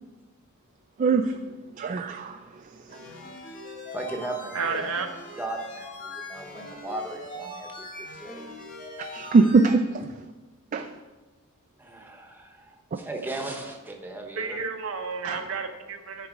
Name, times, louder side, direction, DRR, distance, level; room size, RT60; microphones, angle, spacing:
voice 1, 1.0-1.3 1.8-2.4 9.1-10.0 10.7-10.9 15.2-15.4, right 4 dB, 35° right, 6 dB, 0.3 m, -21 dB
sound 1, 2.9-9.7, left 2 dB, 40° left, 1.5 m, -41 dB
voice 2, 3.9-4.8 5.3-7.9 8.2-8.4 10.7-10.9 11.8-14.6, right 2 dB, 10° right, 2 dB, 0.9 m, -37 dB
voice 3, 4.5-5.1 14.4-16.3, right 5 dB, 65° right, 6 dB, 0.7 m, -31 dB
9.5 x 4.0 x 5.0 m, 1.2 s
head